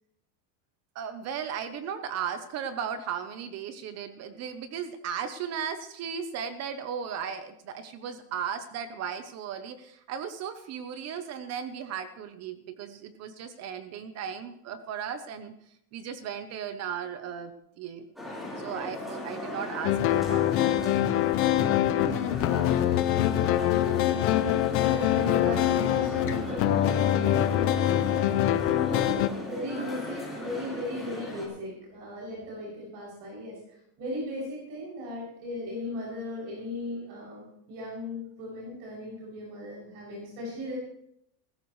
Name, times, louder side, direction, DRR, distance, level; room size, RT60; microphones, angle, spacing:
voice 1, 0.9-15.5 15.9-17.5 17.8-18.1 18.6-20.8, right 7 dB, 30° right, 10 dB, 0.9 m, -36 dB
sound 1, 18.2-31.5, left 1 dB, ahead, 4.2 m, -38 dB
sound 2, 19.8-29.3, left 12 dB, 30° left, 0.5 m, -24 dB
voice 2, 21.9-23.0 23.3-27.9 28.6-33.6 34.0-40.8, left 1 dB, 55° right, -4 dB, 7.1 m, -37 dB
19.0 x 15.5 x 3.2 m, 0.75 s
supercardioid pair, 165°, 50 cm